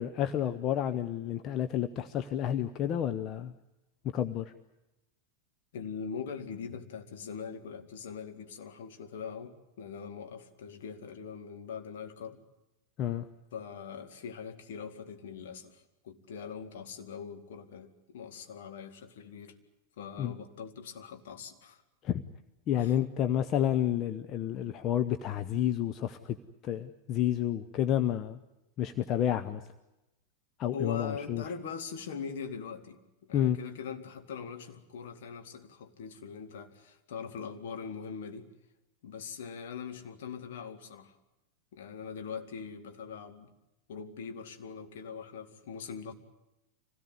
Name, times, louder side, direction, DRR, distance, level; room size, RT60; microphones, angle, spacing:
voice 1, 0.0-3.5 4.1-4.5 13.0-13.2 20.2-20.3 22.0-22.2 22.7-26.4 26.6-28.4 28.8-29.6 30.6-31.4 33.3-33.6, left 11 dB, 35° left, 9 dB, 0.9 m, -30 dB
voice 2, 5.7-12.4 13.5-19.5 20.0-21.8 22.8-23.0 25.6-25.7 30.7-38.5 39.0-41.2 41.7-43.5 43.9-46.1, left 6 dB, 55° left, 5 dB, 2.2 m, -42 dB
25.5 x 17.5 x 9.5 m, 0.95 s
figure-of-eight pair, 90°, 0 cm